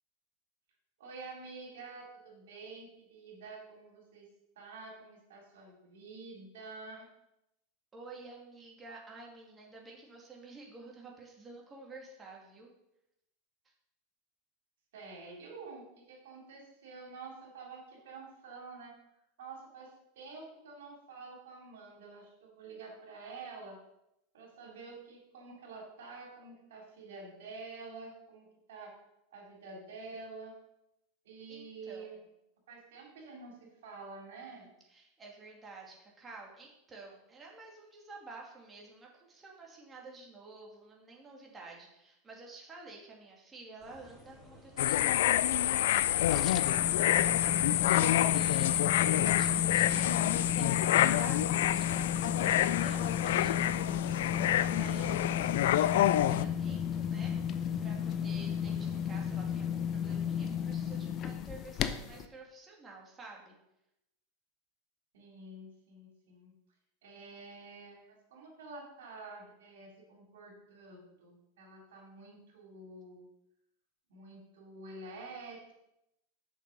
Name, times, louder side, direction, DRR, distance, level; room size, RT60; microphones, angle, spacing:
voice 1, 1.0-4.3 4.6-7.1 14.9-18.9 19.4-23.8 24.3-28.9 29.3-30.5 31.2-32.2 32.7-34.7 47.1-48.1 49.0-49.5 65.1-66.5 67.0-73.2 74.1-75.7, right 3 dB, 80° right, -1 dB, 3.6 m, -48 dB
voice 2, 7.9-12.7 13.6-13.7 31.5-32.2 34.4-46.0 47.9-51.4 51.7-63.6, right 3 dB, 20° right, -1 dB, 2.4 m, -50 dB
sound 1, 43.8-60.7, left 1 dB, ahead, 3.6 m, -55 dB
sound 2, 44.8-56.5, left 13 dB, 75° left, 0.3 m, -28 dB
sound 3, 46.0-62.2, left 8 dB, 40° left, 0.6 m, -34 dB
6.5 x 6.3 x 5.4 m, 0.85 s
supercardioid pair, 120°, 0 cm